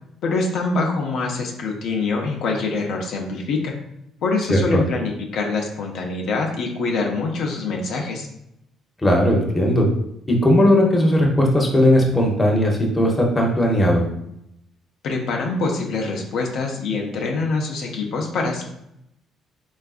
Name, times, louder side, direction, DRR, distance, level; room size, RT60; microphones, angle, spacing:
voice 1, 0.2-3.7 4.2-8.3 15.0-18.6, left 3 dB, 70° left, 1 dB, 0.5 m, -24 dB
voice 2, 9.0-9.9 10.3-14.0, left 1 dB, 15° left, -1 dB, 0.7 m, -17 dB
3.4 x 2.4 x 2.3 m, 0.80 s
cardioid pair, 110°, 0 cm